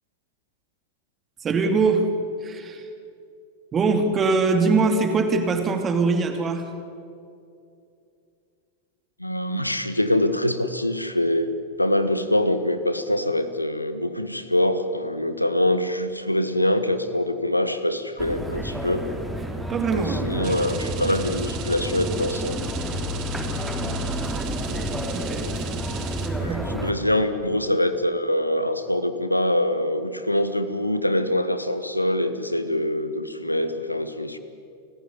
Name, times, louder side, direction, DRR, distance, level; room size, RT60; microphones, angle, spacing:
voice 1, 1.4-2.1 2.4-2.9 3.7-6.7 19.7-20.5 25.1-25.5 26.5-26.6, right 4 dB, 25° right, 6 dB, 2.6 m, -22 dB
voice 2, 9.2-19.1 19.9-22.6 26.3-34.4, left 1 dB, 85° left, 11 dB, 1.4 m, -24 dB
sound 1, 18.2-26.9, equal, 5° right, 3.4 m, -30 dB
sound 2, 20.4-26.3, right 10 dB, 40° right, 2.5 m, -39 dB
29.0 x 15.0 x 9.7 m, 2.5 s
figure-of-eight pair, 90°, 0 cm